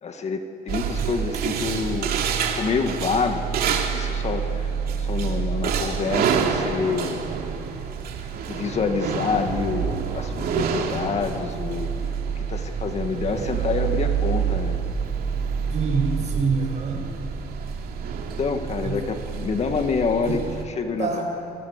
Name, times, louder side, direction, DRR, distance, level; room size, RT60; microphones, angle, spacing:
voice 1, 0.0-2.1 2.6-7.2 8.5-11.9 12.4-14.8 18.4-21.1, left 5 dB, 40° left, 6 dB, 2.0 m, -27 dB
sound 1, 0.7-20.6, right 6 dB, 65° right, 2.9 m, -27 dB
voice 2, 15.7-17.1 18.8-19.0 20.2-20.4 21.0-21.2, right 5 dB, 45° right, 1 dB, 7.6 m, -25 dB
30.0 x 25.0 x 6.7 m, 2.9 s
cardioid pair, 110°, 17 cm